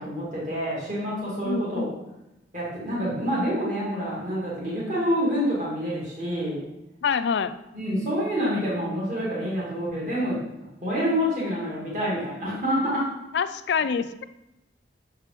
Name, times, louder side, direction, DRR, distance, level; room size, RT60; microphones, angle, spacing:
voice 1, 0.0-1.9 2.5-6.7 7.7-10.4 10.8-13.0, equal, 45° right, -7 dB, 2.0 m, -27 dB
voice 2, 1.4-2.0 7.0-7.5 13.3-14.2, left 6 dB, 70° left, 12 dB, 0.4 m, -26 dB
6.6 x 4.5 x 3.4 m, 0.91 s
head